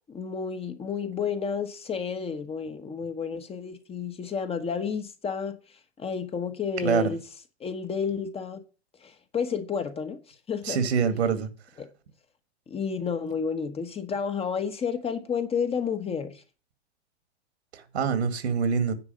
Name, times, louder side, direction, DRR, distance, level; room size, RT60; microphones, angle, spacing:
voice 1, 0.1-5.6 6.0-7.2 7.6-8.6 9.0-10.2 10.5-10.8 11.8-11.9 12.7-16.4, left 6 dB, 15° left, 1.2 m, -31 dB
voice 2, 10.6-11.5 17.7-18.9, right 6 dB, 70° right, 2.1 m, -25 dB
9.8 x 4.8 x 7.8 m
hypercardioid pair, 105°, 34 cm